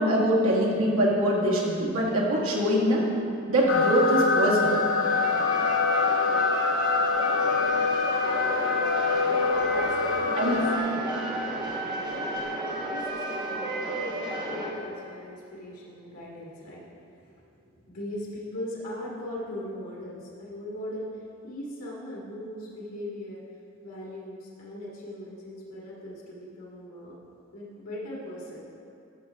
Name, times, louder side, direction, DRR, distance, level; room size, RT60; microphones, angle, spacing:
voice 1, 0.0-3.1 3.5-4.8 10.4-10.6, equal, 75° right, -4 dB, 1.7 m, -23 dB
sound 1, 3.7-10.8, left 4 dB, 65° left, 0.5 m, -25 dB
sound 2, 5.0-14.7, equal, 20° right, 1.2 m, -31 dB
voice 2, 9.2-11.3 12.0-17.3 17.9-21.1 21.4-23.4 23.8-27.2 27.5-28.6, left 1 dB, 90° left, -5 dB, 1.8 m, -39 dB
13.0 x 6.0 x 3.5 m, 2.6 s
head